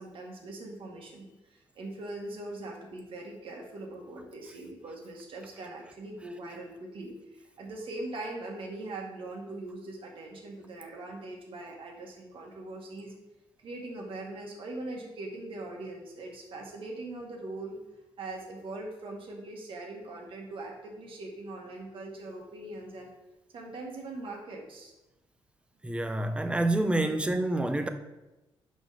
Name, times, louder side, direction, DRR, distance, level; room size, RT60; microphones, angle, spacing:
voice 1, 0.0-13.1 13.6-17.8 18.2-23.1 23.5-24.9 27.0-27.2, right 2 dB, 65° right, 1.7 m, -41 dB
voice 2, 25.8-27.9, right 2 dB, 10° right, 0.7 m, -27 dB
5.9 x 5.1 x 5.0 m
cardioid pair, 90°, 10 cm